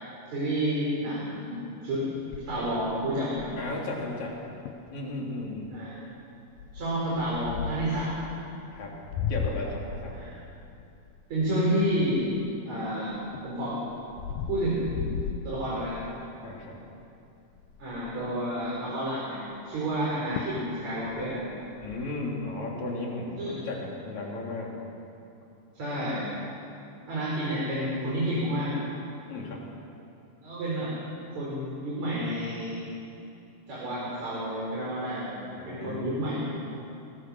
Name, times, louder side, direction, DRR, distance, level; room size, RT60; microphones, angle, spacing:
voice 1, 0.3-2.1 2.4-3.5 5.7-5.9 6.7-8.3 10.1-10.3 11.3-12.3 12.7-13.8 14.5-15.1 15.4-16.0 17.8-21.5 23.4-23.7 25.7-26.3 27.1-28.7 30.4-31.0 31.3-32.8 33.7-35.3 35.7-36.4, right 1 dB, 55° right, -6 dB, 5.7 m, -30 dB
sound 1, 2.3-3.8 4.3-4.4 4.7-4.9 5.4-5.7 6.6-8.0 8.7-12.6 13.1-16.1 16.6-16.9 17.1-17.2 17.5-18.3 19.9-20.0 20.4-20.7 21.0-22.0, left 6 dB, 90° left, 2.7 m, -36 dB
voice 2, 3.6-4.4 4.9-5.7 8.7-9.0 9.3-10.3 16.4-16.8 21.8-24.8 29.3-29.6 35.6-36.1, left 2 dB, 60° left, -2 dB, 4.7 m, -35 dB
24.0 x 20.5 x 6.5 m, 2.7 s
omnidirectional pair, 3.7 m